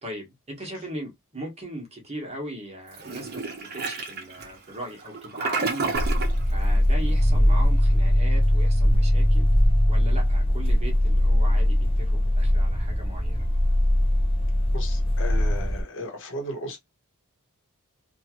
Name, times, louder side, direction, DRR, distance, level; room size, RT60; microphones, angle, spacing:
voice 1, 0.0-5.9 6.5-9.5 9.9-13.5, right 1 dB, 30° right, 1.2 m, -38 dB
Toilet flush, 3.0-6.4, right 4 dB, 45° right, 0.8 m, -31 dB
sound 1, 5.9-15.8, left 1 dB, 25° left, 0.5 m, -21 dB
voice 2, 14.7-16.8, left 1 dB, 60° left, 1.0 m, -35 dB
3.0 x 2.4 x 2.9 m
head